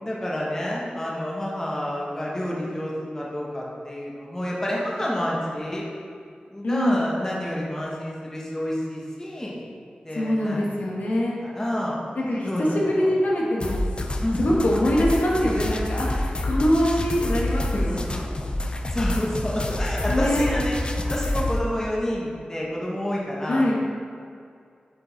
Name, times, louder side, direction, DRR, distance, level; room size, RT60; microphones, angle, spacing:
voice 1, 0.0-5.8 6.5-9.6 10.0-10.9 11.4-12.0 12.5-13.1 14.2-14.6 17.9-18.5 18.9-20.7 21.1-23.6, left 1 dB, 20° left, -5 dB, 1.2 m, -29 dB
voice 2, 6.6-7.0 10.1-11.4 12.1-13.9 14.4-18.1 20.1-20.5 23.5-23.7, left 1 dB, 75° left, -4 dB, 1.5 m, -23 dB
Random drum loop, 13.6-21.6, left 1 dB, 35° left, 0.5 m, -27 dB
7.9 x 5.4 x 4.0 m, 2.3 s
wide cardioid pair, 100°, 3 cm